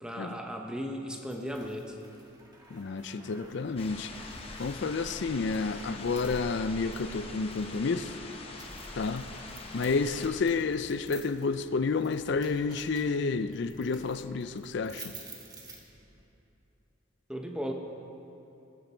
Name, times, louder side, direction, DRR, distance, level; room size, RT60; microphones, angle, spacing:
voice 1, 0.0-2.0 17.3-17.7, equal, 5° right, 2 dB, 0.9 m, -36 dB
sound 1, 1.3-16.3, right 2 dB, 20° right, 1.3 m, -51 dB
voice 2, 2.7-4.1 4.6-8.2 8.9-9.3 9.7-15.1, left 4 dB, 60° left, 12 dB, 0.4 m, -30 dB
sound 2, 3.8-10.3, left 3 dB, 30° left, 1.0 m, -44 dB
20.0 x 9.1 x 4.4 m, 2.9 s
head